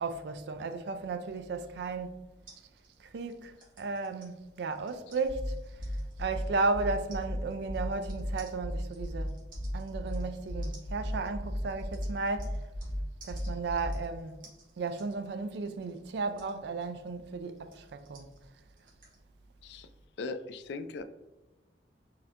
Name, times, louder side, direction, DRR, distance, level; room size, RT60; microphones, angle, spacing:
voice 1, 0.0-2.3 3.0-5.6 6.2-9.4 9.7-12.6 13.2-14.4 14.8-18.3, right 3 dB, 65° right, 0.3 m, -34 dB
sound 1, 2.5-12.9 13.2-19.2, right 3 dB, 50° right, 1.1 m, -58 dB
sound 2, 5.2-14.2, equal, 90° right, 0.9 m, -36 dB
voice 2, 20.2-21.0, left 3 dB, 65° left, 0.3 m, -39 dB
4.1 x 2.7 x 2.4 m
head